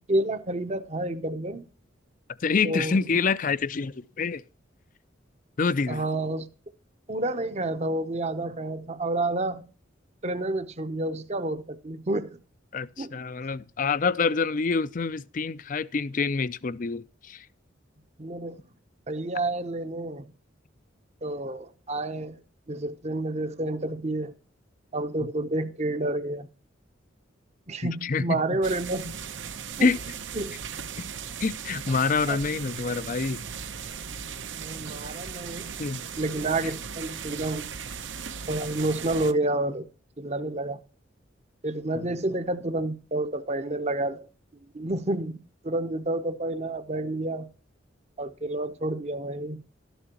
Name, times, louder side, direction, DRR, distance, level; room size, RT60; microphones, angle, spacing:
voice 1, 0.1-1.7 2.6-3.0 5.9-6.5 7.1-9.7 10.2-12.4 13.0-13.2 18.2-18.6 19.1-20.3 21.2-22.4 22.7-24.3 24.9-26.5 27.7-29.1 29.8-29.9 30.3-30.6 31.0-31.1 32.3-32.4 34.5-35.8 36.2-37.6 38.5-39.9 40.2-40.8 41.6-44.3 44.7-47.5 48.2-49.6, right 2 dB, 35° right, 0.8 m, -29 dB
voice 2, 2.4-4.4 5.6-6.0 12.7-17.5 27.8-28.6 29.8-30.0 31.4-33.4 35.8-36.0 41.9-42.1, left 4 dB, 45° left, 0.5 m, -27 dB
sound 1, 28.6-39.3, right 7 dB, 75° right, 0.8 m, -37 dB
13.0 x 11.5 x 2.9 m
head